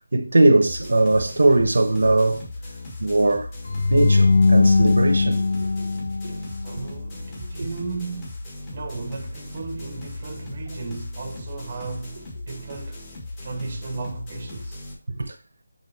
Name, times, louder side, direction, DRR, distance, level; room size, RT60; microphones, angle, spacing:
voice 1, 0.1-2.4 3.0-3.5 3.9-5.9 6.2-6.4 6.8-6.9 7.6-7.7 15.2-15.3, right 2 dB, 70° right, 1.2 m, -20 dB
sound 1, 0.6-14.9, left 2 dB, 20° left, 1.8 m, -38 dB
sound 2, 3.7-6.9, left 3 dB, 70° left, 0.6 m, -19 dB
voice 2, 6.2-8.4 8.7-13.0 13.4-14.8, right 4 dB, 30° right, 1.1 m, -35 dB
8.3 x 3.8 x 4.2 m
figure-of-eight pair, 170°, 0 cm